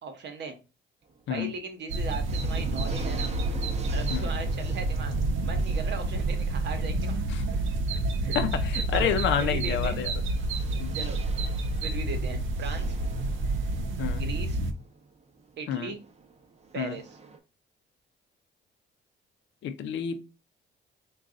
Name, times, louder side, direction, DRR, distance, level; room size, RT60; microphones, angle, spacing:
voice 1, 0.0-0.6 1.3-3.3 3.9-5.1 5.4-7.2 7.5-7.6 8.2-8.4 8.7-9.1 9.4-10.0 10.9-11.5 11.8-13.0 14.1-14.6 15.6-16.0 16.7-17.2, right 4 dB, 60° right, 1.0 m, -38 dB
sound 1, 1.0-1.6 2.0-17.4, right 4 dB, 35° right, 0.7 m, -47 dB
sound 2, 1.9-14.7, right 2 dB, 80° right, 0.7 m, -29 dB
voice 2, 8.3-10.1 10.8-10.9 14.0-14.2 15.7-15.9 16.8-17.0 19.6-20.2, left 8 dB, 70° left, 0.5 m, -29 dB
3.9 x 2.3 x 3.7 m
cardioid pair, 90°, 20 cm